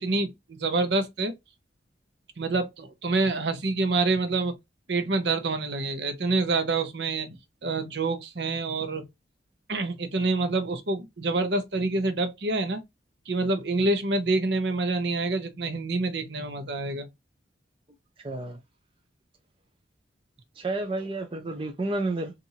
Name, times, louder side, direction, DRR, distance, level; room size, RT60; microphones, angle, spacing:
voice 1, 0.0-1.3 2.4-4.5 4.9-7.3 7.6-9.0 9.7-12.8 13.3-17.1, right 3 dB, 65° right, 0.8 m, -27 dB
voice 2, 18.2-18.6 20.6-22.3, right 2 dB, 30° right, 0.5 m, -30 dB
4.2 x 2.6 x 2.7 m
head